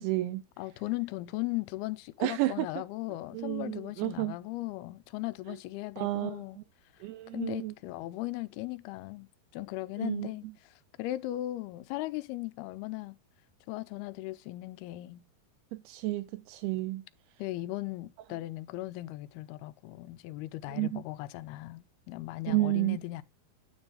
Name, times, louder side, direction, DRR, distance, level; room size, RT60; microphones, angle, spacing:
voice 1, 0.0-0.4 2.2-2.7 3.3-4.3 6.0-6.4 7.0-7.7 10.0-10.3 15.9-17.0 20.7-21.0 22.5-23.0, right 18 dB, 90° right, 2.6 m, -31 dB
voice 2, 0.6-6.6 7.3-13.2 13.7-15.2 17.4-23.2, left 17 dB, 85° left, 2.6 m, -37 dB
9.7 x 3.5 x 5.2 m
omnidirectional pair, 4.5 m